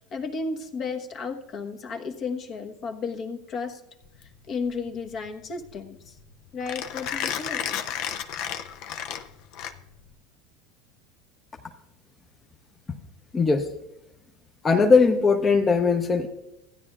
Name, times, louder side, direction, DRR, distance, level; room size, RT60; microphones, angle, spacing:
voice 1, 0.1-3.8 4.5-6.1 6.5-7.8, left 4 dB, 45° left, 4 dB, 1.1 m, -33 dB
Mechanisms, 4.0-10.1, left 9 dB, 60° left, 0.6 m, -33 dB
voice 2, 13.3-13.7 14.6-16.3, left 4 dB, 25° left, 2 dB, 0.8 m, -19 dB
15.5 x 9.6 x 2.4 m, 0.83 s
hypercardioid pair, 95°, 0 cm